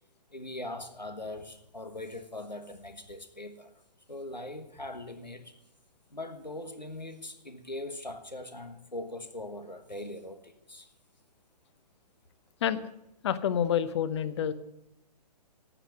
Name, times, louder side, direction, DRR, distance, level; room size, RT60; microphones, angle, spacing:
voice 1, 0.3-3.7 4.1-5.5 6.1-10.9, left 1 dB, 90° left, 8 dB, 1.4 m, -41 dB
voice 2, 13.2-14.5, left 9 dB, 40° left, 14 dB, 0.8 m, -28 dB
9.8 x 9.0 x 8.7 m, 0.84 s
figure-of-eight pair, 120°, 21 cm